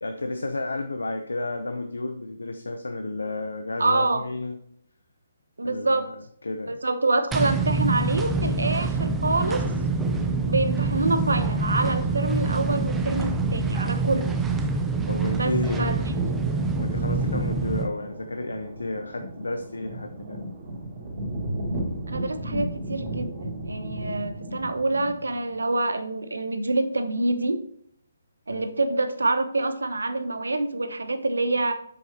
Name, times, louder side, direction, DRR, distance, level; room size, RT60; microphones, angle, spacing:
voice 1, 0.0-4.6 5.6-6.1 6.4-6.8 15.1-16.0 16.8-20.4 28.5-28.6, left 2 dB, 90° left, 6 dB, 0.7 m, -31 dB
voice 2, 3.8-4.2 5.6-6.1 6.7-9.6 10.5-14.4 15.3-15.5 15.8-16.1 22.1-27.6 28.5-31.7, right 2 dB, 90° right, 10 dB, 0.9 m, -26 dB
sound 1, 7.3-17.9, right 3 dB, 10° right, 0.6 m, -26 dB
sound 2, 15.6-25.5, right 1 dB, 35° right, 3.4 m, -35 dB
7.6 x 6.9 x 3.0 m, 0.67 s
hypercardioid pair, 150°, 0 cm